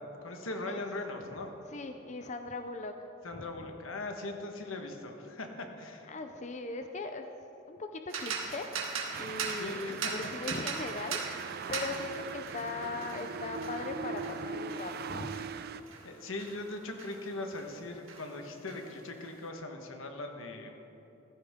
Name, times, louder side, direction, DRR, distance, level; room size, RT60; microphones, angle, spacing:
voice 1, 0.0-1.6 3.2-6.1 9.5-10.1 16.0-20.8, left 2 dB, 85° left, 4 dB, 1.4 m, -40 dB
voice 2, 1.7-2.9 3.3-3.7 6.1-7.3 7.7-8.7 9.2-15.4, left 3 dB, 35° left, 6 dB, 0.5 m, -39 dB
sound 1, 8.1-17.8 18.1-19.4, right 5 dB, 85° right, 1.6 m, -40 dB
sound 2, 9.1-15.8, right 5 dB, 50° right, 0.4 m, -40 dB
15.0 x 13.5 x 3.7 m, 3.0 s
head